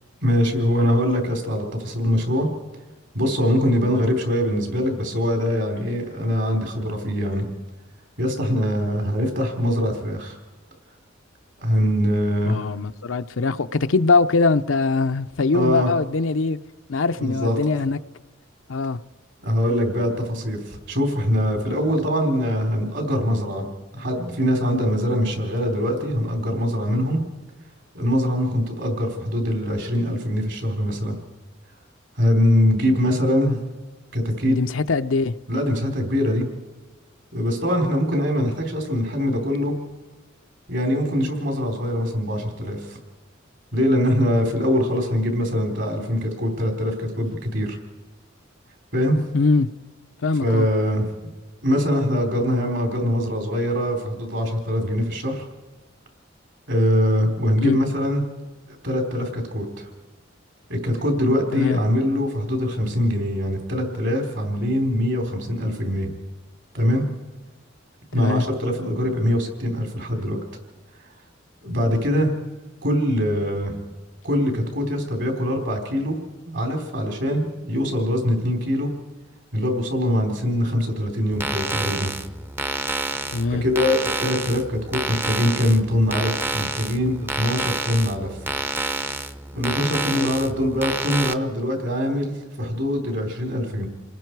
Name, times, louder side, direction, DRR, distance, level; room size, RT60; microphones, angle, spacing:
voice 1, 0.2-2.5 3.1-7.5 8.2-10.4 11.6-12.6 15.5-15.9 17.2-17.5 19.4-23.7 23.9-27.2 27.9-31.2 32.2-33.6 34.1-34.6 35.5-36.5 37.3-39.8 40.7-43.0 43.7-47.8 48.9-49.2 50.4-51.1 51.6-55.4 56.7-58.3 58.7-59.9 60.7-66.1 66.7-67.1 68.1-70.4 71.6-72.3 72.8-73.8 74.2-76.2 76.5-78.9 79.5-82.1 83.5-88.4 89.5-93.9, equal, 65° right, 4.0 m, -23 dB
voice 2, 12.5-16.6 16.9-18.0 18.7-19.0 34.5-35.3 49.3-49.7 50.2-50.7 57.6-57.8 61.5-61.8 68.2-68.4 83.3-83.6 90.1-90.3, left 4 dB, 80° left, 0.7 m, -22 dB
sound 1, 81.3-91.3, right 2 dB, 10° right, 0.6 m, -29 dB
28.5 x 20.0 x 4.7 m
head